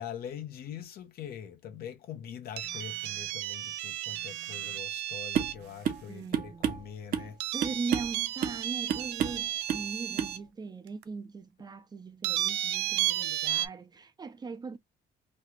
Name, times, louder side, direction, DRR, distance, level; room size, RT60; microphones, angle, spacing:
voice 1, 0.0-7.4, left 9 dB, 65° left, 0.8 m, -43 dB
sound 1, 2.6-5.7 7.4-10.4 11.0-11.1 12.2-13.7, right 13 dB, 85° right, 0.4 m, -33 dB
sound 2, 5.4-5.6 5.9-6.1 6.3-7.3 7.6-8.2 8.4-8.6 8.9-9.4 9.7-9.9 10.2-10.4, right 9 dB, 55° right, 0.8 m, -30 dB
voice 2, 6.1-6.7 7.2-14.8, right 4 dB, 25° right, 0.5 m, -40 dB
3.2 x 2.3 x 2.9 m
cardioid pair, 110°, 17 cm